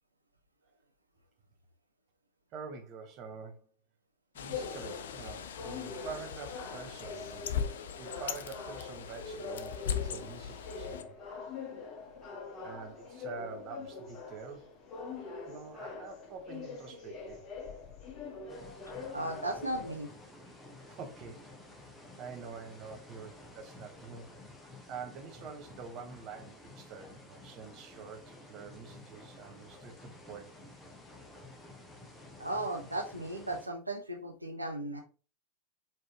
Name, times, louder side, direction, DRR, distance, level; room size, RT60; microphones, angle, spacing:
voice 1, 2.5-3.7 4.3-7.5 8.0-11.2 12.6-14.7 15.5-17.4 20.9-21.5 22.2-24.4 24.9-30.5, right 5 dB, 35° right, 0.8 m, -46 dB
Bird, 4.4-11.0, left 8 dB, 60° left, 0.4 m, -39 dB
sound 1, 4.5-19.9, left 4 dB, 30° left, 1.5 m, -44 dB
sound 2, 18.5-33.7, left 2 dB, 10° left, 1.0 m, -52 dB
voice 2, 19.1-20.1 32.4-35.0, right 1 dB, 85° right, 0.6 m, -36 dB
4.4 x 3.0 x 2.9 m
figure-of-eight pair, 90°, 0 cm